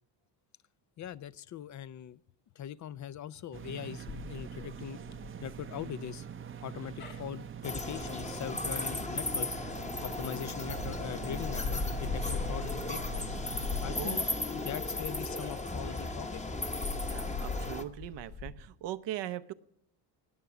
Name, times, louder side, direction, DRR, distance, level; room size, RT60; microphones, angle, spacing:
voice 1, 1.0-2.2 2.6-5.0 5.4-6.3 6.6-9.6 10.0-13.4 13.8-16.4, left 10 dB, 45° left, 17 dB, 0.5 m, -41 dB
sound 1, 3.5-14.0, right 8 dB, 30° right, 0.6 m, -44 dB
sound 2, 4.1-10.1 10.6-18.5, left 4 dB, 90° left, 3.8 m, -40 dB
sound 3, 7.6-17.8, left 2 dB, 15° left, 1.0 m, -36 dB
voice 2, 14.0-14.3 17.0-19.5, right 12 dB, 75° right, 14 dB, 0.8 m, -40 dB
19.5 x 6.8 x 6.0 m, 0.73 s
cardioid pair, 100°, 43 cm